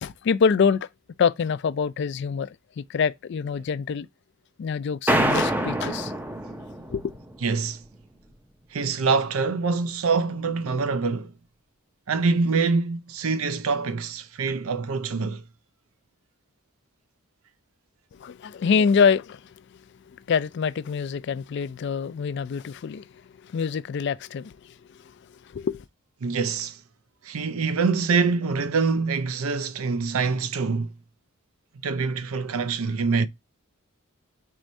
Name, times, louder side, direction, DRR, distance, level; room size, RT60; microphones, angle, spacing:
voice 1, 0.0-0.9 1.2-4.1 4.6-6.1 6.9-7.1 18.1-19.8 20.3-23.1 23.4-25.1 25.5-25.8, left 6 dB, 55° left, 0.3 m, -25 dB
sound 1, 5.1-7.5, right 1 dB, 10° right, 0.5 m, -26 dB
voice 2, 7.4-7.8 8.7-11.3 12.1-15.4 26.2-26.8 27.2-30.9 31.8-33.3, right 4 dB, 80° right, 0.5 m, -25 dB
4.7 x 4.2 x 2.6 m
head